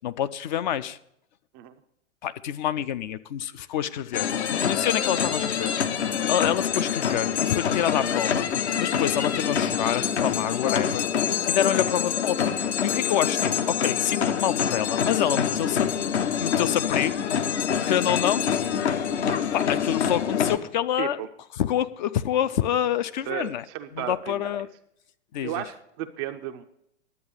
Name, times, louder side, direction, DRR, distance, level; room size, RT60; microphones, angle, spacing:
voice 1, 0.0-1.0 2.2-5.7 6.2-8.5 8.8-11.1 11.5-15.9 16.2-17.1 17.9-18.4 19.5-21.2 21.6-23.6 23.9-24.7 25.3-25.6, left 10 dB, 40° left, 14 dB, 0.4 m, -27 dB
sound 1, 4.1-20.6, left 8 dB, 65° left, 1.0 m, -26 dB
voice 2, 21.0-21.3 23.3-24.5 25.4-26.6, right 11 dB, 20° right, 8 dB, 0.4 m, -34 dB
11.0 x 8.0 x 6.5 m, 0.77 s
figure-of-eight pair, 105°, 36 cm